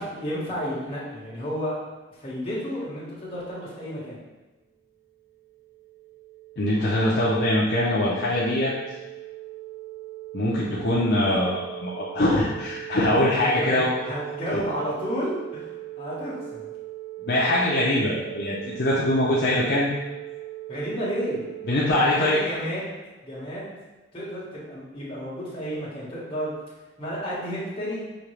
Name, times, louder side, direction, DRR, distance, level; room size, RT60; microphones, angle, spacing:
voice 1, 0.0-1.7 2.2-4.2 13.4-15.7 16.0-16.7 20.7-21.4 22.1-22.9 23.2-23.7 24.1-26.5 27.0-28.0, equal, 30° left, -8 dB, 1.4 m, -31 dB
sound 1, 4.9-21.9, right 17 dB, 50° right, 1.1 m, -40 dB
voice 2, 6.6-8.7 10.3-13.9 14.5-14.6 17.2-19.9 21.6-22.4, left 1 dB, 55° left, -6 dB, 0.6 m, -23 dB
5.1 x 2.9 x 3.3 m, 1.1 s
head